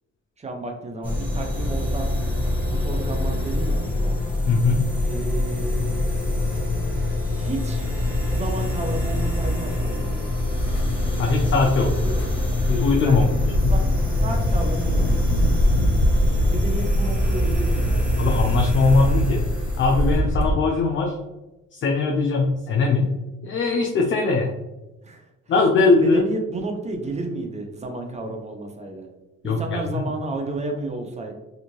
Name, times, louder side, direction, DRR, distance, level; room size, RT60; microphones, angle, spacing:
voice 1, 0.4-2.1 2.7-4.2 5.1-5.9 7.3-7.9 8.3-10.3 12.0-12.4 13.0-13.3 13.7-13.9 14.2-15.1 16.4-18.1 25.0-25.2 26.0-29.1 29.4-31.3, right 2 dB, 20° right, 3 dB, 0.5 m, -32 dB
sound 1, 1.0-20.2, left 1 dB, 5° right, 1.1 m, -25 dB
voice 2, 4.5-4.9 11.2-11.9 12.7-13.5 18.2-19.4 19.8-21.2 21.7-23.1 23.4-24.5 25.5-26.2 29.4-30.1, left 3 dB, 40° left, 1 dB, 0.4 m, -20 dB
sound 2, 10.6-20.5, equal, 85° left, 0.7 m, -24 dB
2.6 x 2.4 x 3.0 m, 1.0 s
cardioid pair, 90°, 30 cm